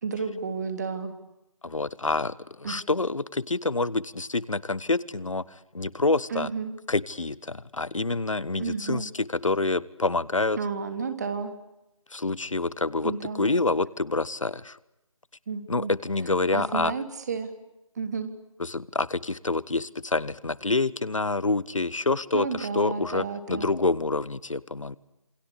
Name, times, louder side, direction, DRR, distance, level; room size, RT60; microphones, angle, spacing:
voice 1, 0.0-1.1 2.6-2.8 6.3-6.7 8.6-9.0 10.6-11.5 13.0-13.6 15.5-15.9 16.5-17.5 17.9-18.3 22.3-23.8, right 5 dB, 30° right, 9 dB, 3.2 m, -32 dB
voice 2, 1.6-5.4 5.7-6.5 6.9-9.1 9.4-10.6 12.1-14.8 15.7-16.9 18.6-25.0, left 3 dB, 70° left, 21 dB, 1.2 m, -27 dB
28.0 x 24.5 x 8.4 m, 0.92 s
figure-of-eight pair, 160°, 17 cm